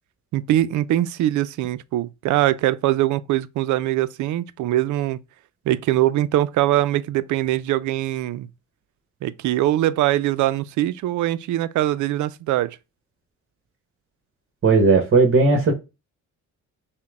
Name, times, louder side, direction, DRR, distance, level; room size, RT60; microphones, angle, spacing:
voice 1, 0.3-5.2 5.7-8.5 9.2-12.8, right 14 dB, 75° right, 0.5 m, -22 dB
voice 2, 14.6-15.7, right 3 dB, 45° right, 1.2 m, -16 dB
5.7 x 2.2 x 3.5 m
cardioid pair, 90°, 30 cm